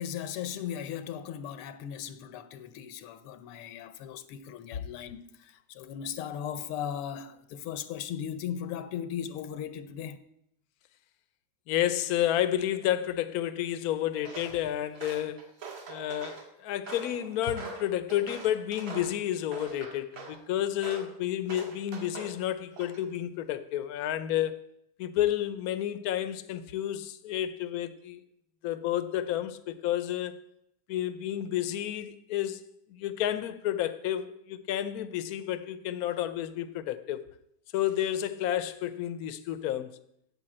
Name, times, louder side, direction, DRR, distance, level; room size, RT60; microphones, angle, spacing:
voice 1, 0.0-10.2, left 9 dB, 90° left, 1.7 m, -37 dB
voice 2, 11.7-15.4 15.9-24.5 25.0-28.2 28.6-30.3 30.9-32.6 32.9-37.2 37.7-39.9, left 12 dB, 70° left, 0.8 m, -31 dB
Walk footsteps, 14.2-14.6 14.9-16.4 16.9-19.2 19.5-20.4 20.8-21.1 21.5-22.4 22.7-23.2, right 4 dB, 65° right, 2.6 m, -43 dB
8.7 x 8.3 x 7.6 m
omnidirectional pair, 2.4 m